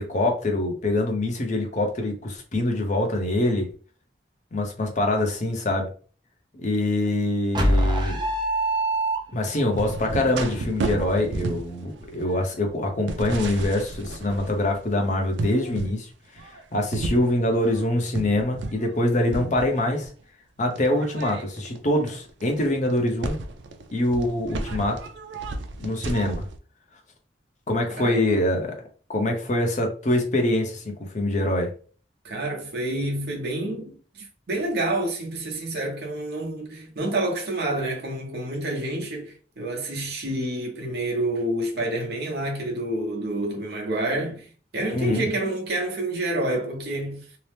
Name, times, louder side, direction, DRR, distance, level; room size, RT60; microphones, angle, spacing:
voice 1, 0.0-3.7 4.5-5.9 6.5-8.2 9.3-16.1 16.4-20.1 20.6-23.4 23.9-25.0 25.8-26.5 27.7-28.7 29.1-31.7 44.9-45.3, left 1 dB, 45° left, 0.7 m, -24 dB
sound 1, 7.5-9.7, right 1 dB, 25° right, 0.5 m, -23 dB
sound 2, 9.7-14.9 15.3-16.0 16.4-19.0 19.3-20.1 20.7-26.6, right 2 dB, 85° right, 0.4 m, -33 dB
voice 2, 28.0-28.4 32.2-44.5 44.7-47.3, right 1 dB, 60° right, 0.8 m, -28 dB
2.8 x 2.0 x 3.3 m
head